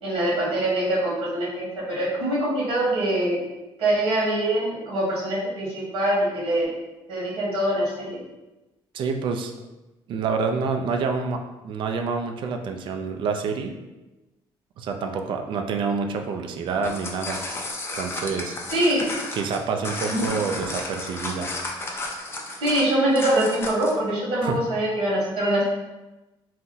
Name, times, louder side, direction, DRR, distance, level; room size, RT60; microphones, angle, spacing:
voice 1, 0.0-3.4 3.8-6.7 7.1-8.2 18.7-19.1 20.1-20.3 22.6-25.6, right 1 dB, 80° right, -6 dB, 1.3 m, -24 dB
voice 2, 8.9-9.5 10.1-13.8 14.8-17.4 18.0-18.5 19.3-21.5 24.4-24.6, right 5 dB, 60° right, 5 dB, 0.4 m, -27 dB
sound 1, 16.7-24.0, left 2 dB, 25° left, 0.5 m, -33 dB
2.8 x 2.1 x 3.7 m, 1.0 s
cardioid pair, 120°, 10 cm